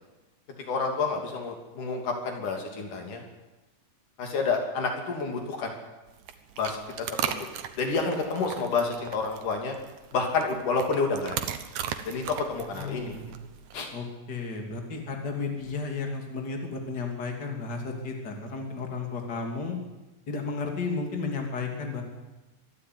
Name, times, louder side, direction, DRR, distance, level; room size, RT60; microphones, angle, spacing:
voice 1, 0.7-3.2 4.2-5.7 6.6-6.8 7.1-7.5 7.8-9.8 10.1-11.4 12.1-13.2 13.7-13.9, left 4 dB, 80° left, 2 dB, 4.4 m, -29 dB
sound 1, 6.1-13.9, right 9 dB, 75° right, 2.5 m, -38 dB
voice 2, 12.7-13.3 13.9-19.8 20.3-22.0, left 4 dB, 35° left, 2 dB, 3.4 m, -33 dB
24.0 x 12.5 x 9.6 m, 1.1 s
omnidirectional pair, 3.6 m